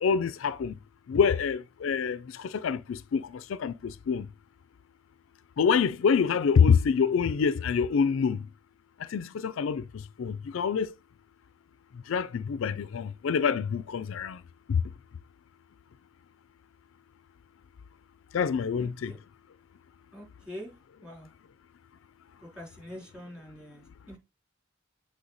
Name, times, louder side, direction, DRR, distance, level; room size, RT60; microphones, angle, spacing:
voice 1, 0.0-0.8 1.1-4.3 5.6-8.5 9.0-10.9 12.1-14.4 14.7-14.8 18.3-19.1, left 6 dB, 75° left, 0.4 m, -26 dB
voice 2, 18.8-19.2 20.1-20.7 21.0-21.3 22.4-24.2, equal, 5° right, 3.2 m, -45 dB
7.9 x 3.3 x 3.9 m
head